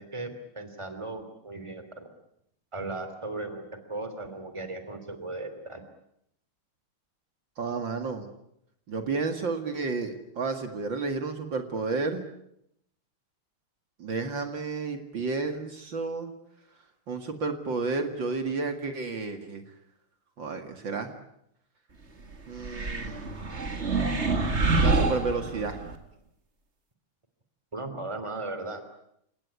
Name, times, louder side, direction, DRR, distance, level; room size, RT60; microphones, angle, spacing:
voice 1, 0.0-2.1 2.7-5.8 27.7-28.8, right 2 dB, 15° right, 9 dB, 3.0 m, -37 dB
voice 2, 7.6-8.3 8.9-12.2 14.0-16.3 17.1-19.6 20.4-21.1 22.5-23.3 24.8-25.8, right 4 dB, 60° right, 6 dB, 2.7 m, -31 dB
sound 1, 22.6-26.0, right 3 dB, 30° right, 2.3 m, -26 dB
29.5 x 18.0 x 9.9 m, 0.76 s
omnidirectional pair, 2.4 m